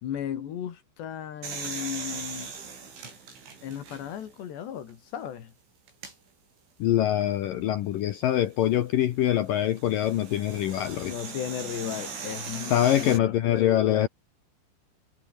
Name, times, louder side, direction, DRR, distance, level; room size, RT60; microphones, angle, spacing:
voice 1, 0.0-2.5 3.6-5.5 11.0-14.1, left 9 dB, 65° left, 4.3 m, -35 dB
sound 1, 1.4-4.3 4.9-5.0 5.9-6.1 8.3-13.2, right 5 dB, 65° right, 9.6 m, -40 dB
voice 2, 6.8-11.1 12.7-14.1, left 12 dB, 85° left, 1.9 m, -24 dB
omnidirectional pair, 5.8 m